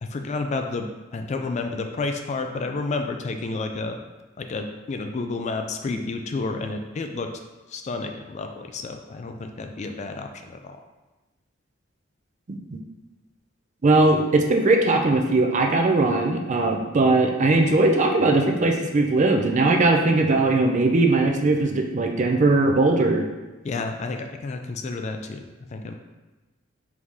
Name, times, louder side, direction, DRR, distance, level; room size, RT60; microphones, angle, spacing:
voice 1, 0.0-4.0 4.4-7.3 7.7-10.8 23.6-25.4 25.7-26.0, left 3 dB, 35° left, 5 dB, 0.3 m, -30 dB
voice 2, 12.5-12.8 13.8-23.2, right 2 dB, 40° right, 3 dB, 0.4 m, -20 dB
4.7 x 2.6 x 3.6 m, 1.1 s
head